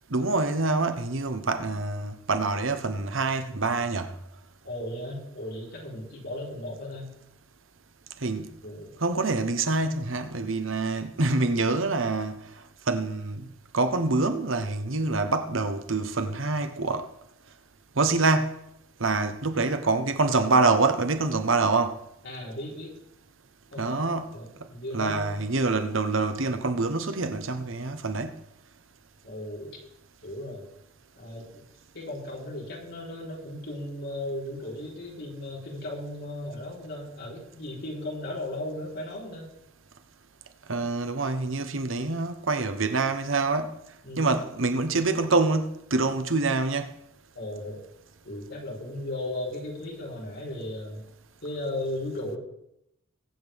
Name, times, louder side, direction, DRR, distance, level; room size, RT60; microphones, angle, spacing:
voice 1, 0.1-4.1 8.2-8.5 9.0-12.4 12.9-13.5 13.7-17.1 18.0-18.6 19.0-22.0 23.8-24.4 24.9-28.3 40.7-43.8 44.2-46.9, right 3 dB, 70° right, 1.1 m, -26 dB
voice 2, 4.6-7.1 8.6-8.9 22.2-22.9 23.7-23.9 24.3-25.5 29.2-29.8 30.2-30.7 31.2-31.6 31.9-39.5 44.0-44.3 47.3-47.8 48.2-51.0 51.4-52.4, left 1 dB, 55° left, 4.2 m, -36 dB
22.5 x 8.1 x 3.6 m
head